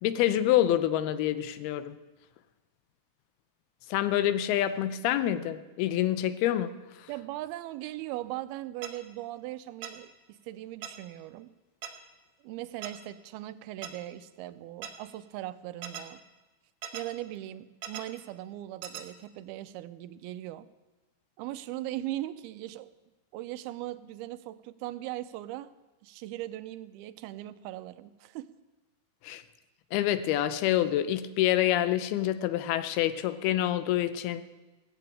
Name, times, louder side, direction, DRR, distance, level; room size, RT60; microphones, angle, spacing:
voice 1, 0.0-2.0 3.9-7.1 29.2-29.4 29.9-34.4, left 12 dB, 85° left, 13 dB, 2.7 m, -27 dB
voice 2, 7.1-11.5 12.4-16.2 16.9-20.7 21.4-22.9 23.3-25.7 26.0-28.5, right 15 dB, 85° right, 12 dB, 2.5 m, -39 dB
sound 1, 8.8-8.9 9.8-9.9 10.8-10.9 11.8-11.9 12.8-12.9 13.8-13.9 14.8-14.9 15.8-16.0 16.8-17.0 17.8-18.0 18.8-19.0, right 8 dB, 65° right, 1.9 m, -38 dB
16.5 x 7.7 x 8.7 m, 1.2 s
omnidirectional pair, 4.4 m